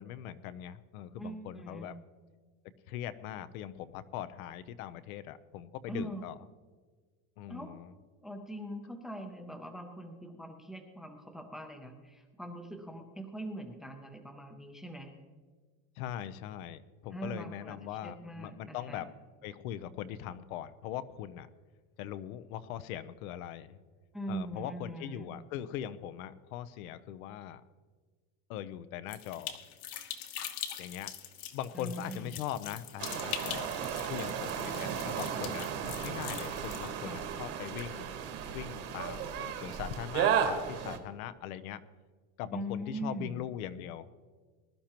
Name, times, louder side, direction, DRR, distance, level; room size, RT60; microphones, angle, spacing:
voice 1, 0.0-2.0 2.9-6.3 7.4-7.9 16.0-19.1 19.4-21.5 22.0-23.8 24.3-27.6 28.5-29.5 30.8-31.1 31.5-33.7 34.1-38.1 38.5-41.8 42.4-44.1, left 11 dB, 80° left, 14 dB, 0.8 m, -41 dB
voice 2, 1.2-1.9 5.9-6.3 7.5-7.7 8.2-15.1 17.1-19.1 24.1-25.3 31.7-32.4 37.0-37.2 42.5-43.4, right 1 dB, ahead, 4 dB, 0.5 m, -42 dB
sound 1, 29.1-36.9, left 10 dB, 50° left, 1.1 m, -43 dB
sound 2, 33.0-41.0, right 8 dB, 35° right, 1.3 m, -34 dB
20.5 x 11.5 x 3.0 m, 1.5 s
cardioid pair, 170°, 42 cm